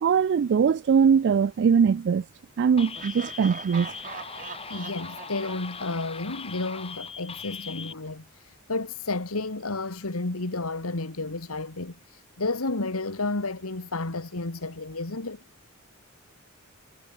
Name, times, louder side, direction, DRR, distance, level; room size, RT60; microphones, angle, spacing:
voice 1, 0.0-2.2 2.6-3.9, right 6 dB, 55° right, 0.3 m, -21 dB
sound 1, 2.8-7.9, left 6 dB, 25° left, 1.4 m, -40 dB
Laughter, 2.9-6.8, right 6 dB, 35° right, 1.6 m, -42 dB
voice 2, 4.7-15.4, left 3 dB, 85° left, 1.9 m, -32 dB
head